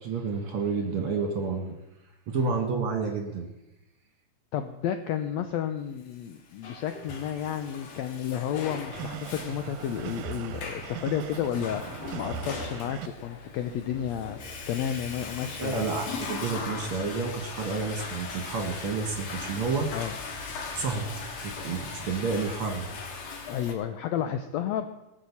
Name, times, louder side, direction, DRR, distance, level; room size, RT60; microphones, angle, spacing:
voice 1, 0.0-1.7 2.3-3.5 15.6-19.9 20.6-22.9, right 5 dB, 55° right, 4 dB, 1.9 m, -30 dB
voice 2, 4.5-15.9 19.9-20.1 23.5-24.9, left 9 dB, 85° left, 8 dB, 1.5 m, -32 dB
Water / Toilet flush, 6.2-23.7, left 5 dB, 60° left, 2.5 m, -39 dB
sound 1, 8.9-13.1, right 8 dB, 75° right, 2.0 m, -39 dB
sound 2, 13.9-22.4, equal, 10° left, 3.9 m, -49 dB
19.0 x 6.6 x 7.0 m, 0.97 s
omnidirectional pair, 3.8 m